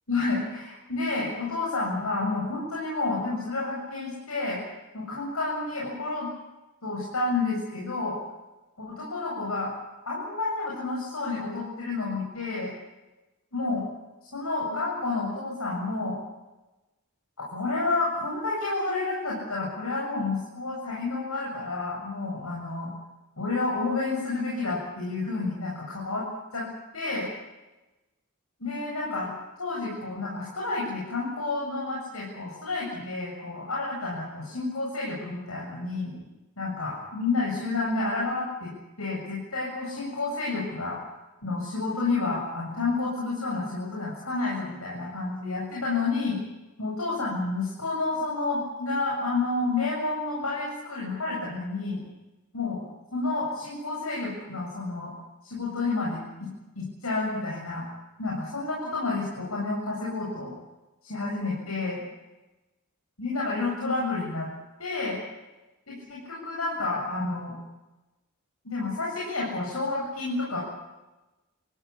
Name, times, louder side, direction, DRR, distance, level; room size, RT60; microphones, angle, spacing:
voice 1, 0.1-4.6 4.9-6.3 6.8-8.2 8.8-9.7 10.1-12.7 13.5-13.9 14.2-16.2 17.4-22.9 23.4-26.3 26.5-26.7 26.9-27.3 28.6-29.3 29.6-36.1 36.6-38.7 39.0-41.0 41.4-46.4 46.8-52.0 52.5-52.8 53.1-55.1 55.4-56.2 56.8-57.9 58.2-60.5 61.0-62.0 63.2-64.5 64.8-65.2 65.9-67.5 68.6-70.6, left 3 dB, 75° left, -4 dB, 7.9 m, -30 dB
28.0 x 15.5 x 9.8 m, 1.1 s
head